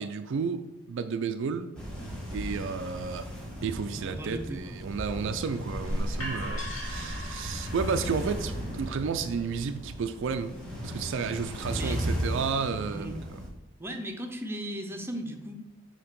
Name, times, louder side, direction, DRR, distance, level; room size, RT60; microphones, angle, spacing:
voice 1, 0.0-1.7 2.3-3.3 3.6-10.6 10.8-13.4, right 5 dB, 65° right, 0.4 m, -32 dB
sound 1, 1.8-13.5, equal, 5° left, 1.4 m, -36 dB
voice 2, 3.9-4.8 11.7-12.0 12.8-13.1 13.8-15.5, equal, 10° right, 0.6 m, -37 dB
sound 2, 5.7-11.5, equal, 80° left, 2.1 m, -38 dB
7.0 x 2.9 x 5.3 m
head